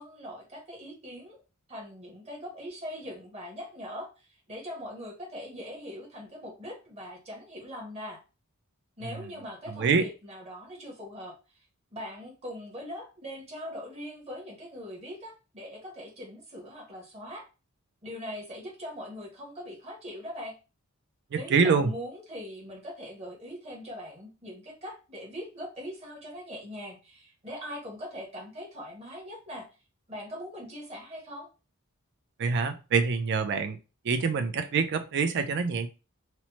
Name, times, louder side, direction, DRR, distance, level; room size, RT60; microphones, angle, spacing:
voice 1, 0.0-1.4 1.7-8.2 9.0-11.4 11.9-17.4 18.0-20.5 21.3-29.7 30.1-31.5, equal, 30° right, -2 dB, 1.0 m, -41 dB
voice 2, 9.7-10.1 21.3-21.9 32.4-33.8 34.0-35.9, right 5 dB, 50° right, 8 dB, 0.4 m, -25 dB
3.0 x 2.1 x 2.8 m, 0.31 s
head